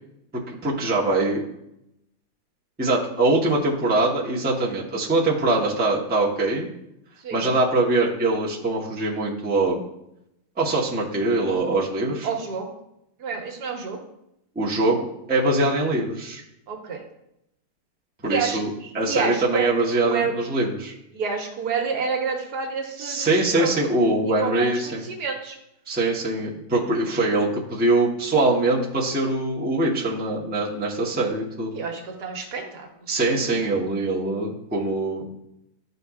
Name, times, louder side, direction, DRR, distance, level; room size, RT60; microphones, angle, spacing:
voice 1, 0.5-1.4 2.8-6.7 7.3-9.8 10.6-12.3 14.5-16.4 18.2-18.7 18.9-21.0 23.0-25.0 25.9-31.7 33.1-35.3, right 2 dB, 10° right, -4 dB, 0.7 m, -23 dB
voice 2, 12.2-12.8 13.2-14.0 16.7-17.0 18.3-19.7 20.0-20.4 21.1-23.7 24.4-25.6 31.7-33.2, right 5 dB, 75° right, 2 dB, 1.5 m, -29 dB
11.5 x 3.9 x 2.4 m, 0.82 s
omnidirectional pair, 1.8 m